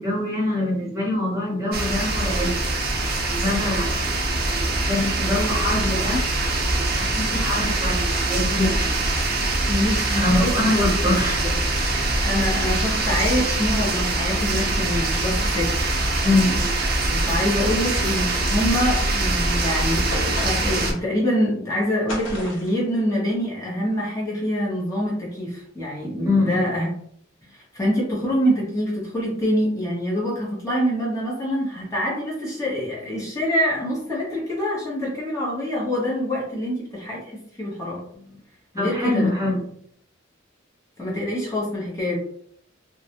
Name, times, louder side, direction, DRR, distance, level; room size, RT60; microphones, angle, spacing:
voice 1, 0.0-2.6 3.3-4.1 4.4-6.3 6.7-8.9 10.2-11.5 16.2-16.7 26.2-26.7 38.8-39.6, left 2 dB, 15° right, -4 dB, 0.9 m, -24 dB
sound 1, 1.7-20.9, right 2 dB, 50° right, 0.6 m, -23 dB
voice 2, 9.7-10.5 11.4-11.5 12.2-16.3 17.1-26.9 27.5-38.0 38.7-39.3 41.0-42.1, equal, 15° left, -6 dB, 0.8 m, -25 dB
sound 2, 20.1-20.9 22.1-22.8, left 1 dB, 80° left, 0.7 m, -33 dB
2.3 x 2.0 x 2.8 m, 0.66 s
head